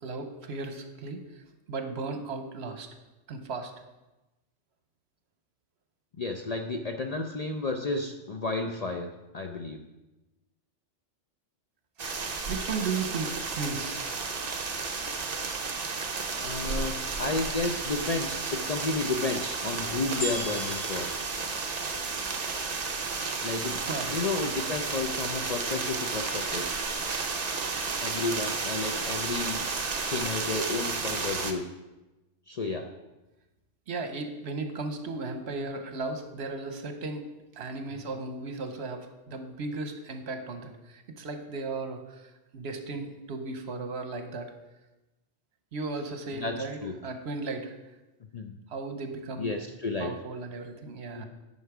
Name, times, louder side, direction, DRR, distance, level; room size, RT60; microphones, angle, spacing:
voice 1, 0.0-2.9 3.3-3.7 12.5-14.0 23.8-24.2 33.9-37.3 37.5-42.2 42.5-44.5 45.7-47.8 48.7-49.5 50.0-51.3, right 3 dB, 65° right, 6 dB, 1.1 m, -35 dB
voice 2, 6.2-9.8 15.7-15.8 16.4-21.1 23.4-23.8 24.1-26.7 28.0-29.7 30.1-31.6 32.5-32.9 46.4-46.9 48.3-48.5 49.4-50.1 51.1-51.3, left 3 dB, 50° left, 4 dB, 0.5 m, -32 dB
sound 1, 12.0-31.5, right 4 dB, 40° right, 0.7 m, -32 dB
sound 2, 20.2-22.6 23.2-23.3, equal, 65° left, 3.9 m, -39 dB
10.0 x 5.4 x 4.8 m, 1.0 s
omnidirectional pair, 1.2 m